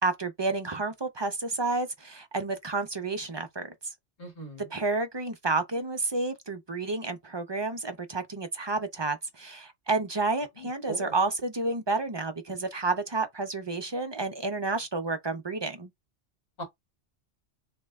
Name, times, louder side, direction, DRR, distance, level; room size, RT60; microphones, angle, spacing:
voice 1, 0.0-3.7 4.7-15.9, right 3 dB, 35° right, 0.5 m, -30 dB
voice 2, 4.2-4.6 10.6-11.1 16.6-16.7, right 2 dB, 55° left, 2.2 m, -39 dB
3.2 x 2.8 x 3.5 m
omnidirectional pair, 1.1 m